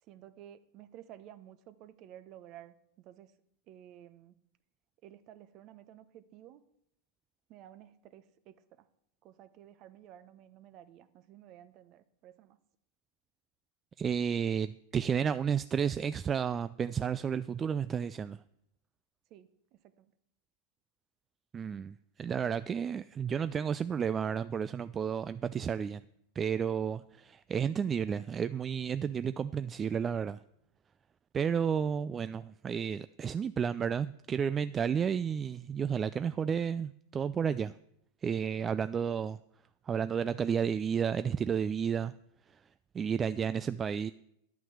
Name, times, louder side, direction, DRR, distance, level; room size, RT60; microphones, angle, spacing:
voice 1, 0.0-3.4 3.7-4.4 5.0-6.6 7.5-8.9 9.2-12.6 19.3-20.1, right 11 dB, 45° right, 0.9 m, -53 dB
voice 2, 14.0-18.4 21.5-26.0 26.4-30.4 31.3-37.8 38.2-39.4 39.9-42.1 42.5-42.6 42.9-44.1, right 7 dB, 25° right, 0.3 m, -32 dB
11.0 x 5.9 x 7.3 m
hypercardioid pair, 100°, 0 cm